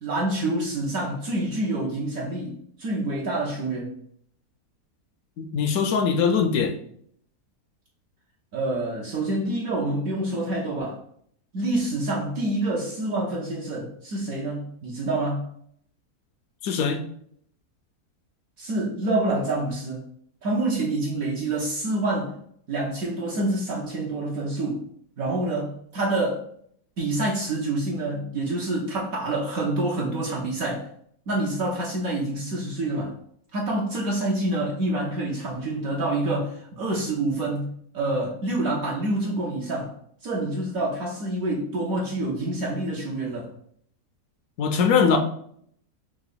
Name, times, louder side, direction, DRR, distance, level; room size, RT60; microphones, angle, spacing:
voice 1, 0.0-3.9 8.5-11.0 11.5-15.4 18.6-20.0 20.4-22.3 22.7-24.8 25.2-26.4 27.0-30.9 31.3-33.1 33.5-39.9 40.2-43.5, right 2 dB, 65° right, 1.2 m, -27 dB
voice 2, 5.4-6.7 16.6-17.0 44.6-45.2, left 6 dB, 70° left, 0.9 m, -21 dB
3.8 x 2.9 x 4.0 m
omnidirectional pair, 1.7 m